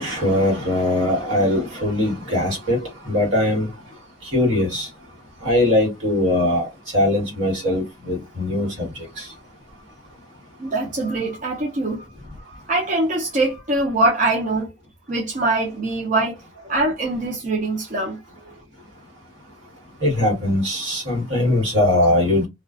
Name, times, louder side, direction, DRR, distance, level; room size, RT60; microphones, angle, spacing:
voice 1, 0.0-2.8 3.1-3.7 4.3-4.9 5.4-6.7 6.9-8.9 9.2-9.3 20.0-22.5, left 1 dB, 70° right, 1.5 m, -20 dB
voice 2, 10.6-12.1 12.5-14.7 15.1-16.4 16.6-18.2 18.5-18.6, right 2 dB, 40° right, 0.5 m, -23 dB
2.4 x 2.3 x 2.4 m
head